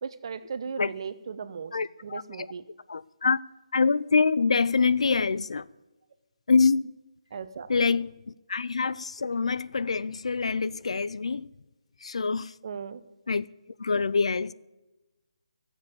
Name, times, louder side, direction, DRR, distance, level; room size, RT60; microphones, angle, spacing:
voice 1, 0.0-1.8 2.0-2.6 7.3-7.7 12.6-13.0, right 6 dB, 50° right, 0.9 m, -37 dB
voice 2, 1.7-2.5 2.9-3.4 3.7-5.7 6.5-6.9 7.7-11.5 12.0-12.5 13.3-13.5 13.8-14.5, left 4 dB, 70° left, 0.5 m, -25 dB
15.0 x 7.3 x 8.5 m
figure-of-eight pair, 155°, 3 cm